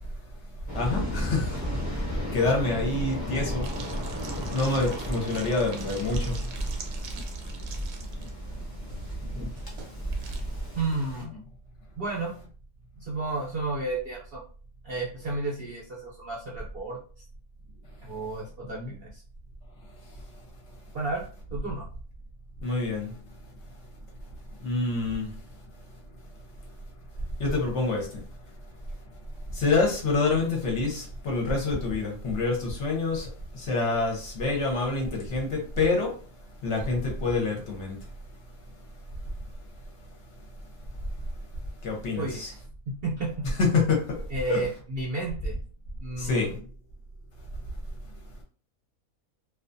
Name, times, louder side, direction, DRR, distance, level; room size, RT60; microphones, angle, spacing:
voice 1, 0.7-1.6 1.9-2.0 2.3-3.7 4.5-6.4 18.7-18.9 22.6-23.1 24.6-25.3 27.4-28.2 29.5-36.2 36.6-38.0 41.8-42.5 43.6-44.7 46.2-46.6, left 3 dB, 60° left, 0.9 m, -27 dB
Waves surf, 0.7-11.2, equal, 20° left, 0.7 m, -34 dB
sound 1, 3.6-10.4, right 4 dB, 75° right, 1.0 m, -44 dB
voice 2, 10.7-11.4 12.0-12.3 13.0-14.4 14.8-17.0 18.0-19.2 20.9-21.3 21.5-21.9 42.2-42.5 42.9-43.5 44.3-45.5 46.0-46.6, right 3 dB, 60° right, 0.6 m, -32 dB
2.4 x 2.3 x 2.5 m
omnidirectional pair, 1.5 m